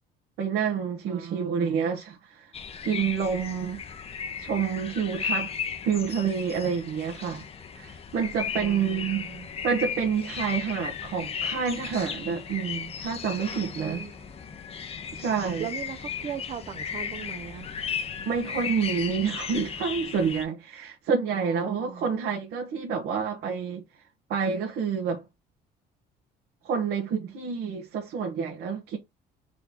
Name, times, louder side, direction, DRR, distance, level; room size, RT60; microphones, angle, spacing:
voice 1, 0.4-2.5 2.8-3.8 4.4-5.5 5.8-7.5 7.7-9.2 9.6-14.1 15.1-15.7 18.3-23.8 24.3-25.2 26.6-29.0, right 6 dB, 75° right, 1.0 m, -28 dB
voice 2, 1.1-2.0 8.6-9.5 13.8-14.1 15.6-17.7 21.3-22.1, right 8 dB, 40° right, 0.5 m, -39 dB
sound 1, 2.5-20.4, left 7 dB, 35° left, 0.7 m, -35 dB
3.8 x 3.6 x 2.9 m
cardioid pair, 110°, 17 cm